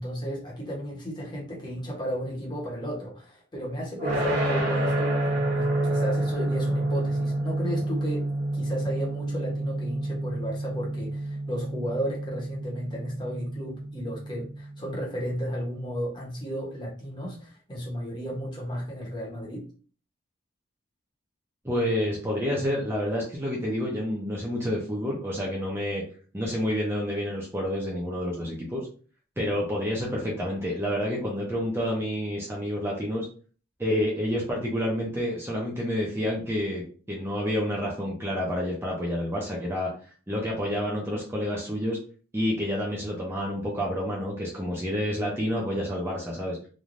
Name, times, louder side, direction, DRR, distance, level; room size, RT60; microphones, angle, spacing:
voice 1, 0.0-8.3 8.5-19.6, equal, 20° left, -3 dB, 0.9 m, -34 dB
sound 1, 4.0-15.0, right 1 dB, 40° right, 0.9 m, -28 dB
voice 2, 21.6-26.0 26.3-28.9 29.4-33.3 33.8-39.9 40.3-42.0 42.3-46.6, equal, 10° right, -4 dB, 0.5 m, -29 dB
3.1 x 2.2 x 2.5 m, 0.41 s
head